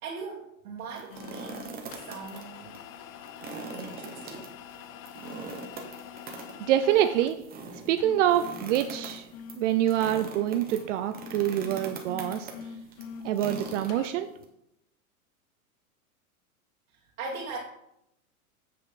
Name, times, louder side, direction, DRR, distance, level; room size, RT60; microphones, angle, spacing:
voice 1, 0.0-1.6 1.9-2.8 3.4-4.5 16.9-17.6, right 4 dB, 75° right, -3 dB, 1.7 m, -40 dB
sound 1, 0.8-2.4 2.7-2.8 3.3-14.5, right 4 dB, 20° right, 1.3 m, -42 dB
sound 2, 1.1-14.1, left 7 dB, 35° left, 0.6 m, -45 dB
voice 2, 6.7-7.4 7.9-9.3 9.5-12.5 13.2-14.3, right 11 dB, 55° right, 10 dB, 0.6 m, -25 dB
7.7 x 6.5 x 4.1 m, 0.82 s
hypercardioid pair, 130°, 44 cm